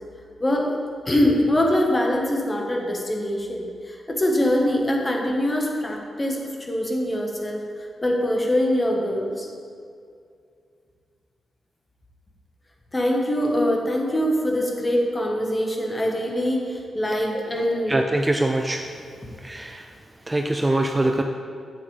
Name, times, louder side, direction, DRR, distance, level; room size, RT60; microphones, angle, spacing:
voice 1, 0.4-0.8 1.1-7.6 8.0-9.5 12.9-18.0, left 1 dB, 20° left, 0 dB, 1.3 m, -23 dB
voice 2, 17.9-19.0 19.4-19.9 20.3-21.2, right 1 dB, 20° right, 4 dB, 0.4 m, -23 dB
8.7 x 7.1 x 3.3 m, 2.4 s
cardioid pair, 100°, 0 cm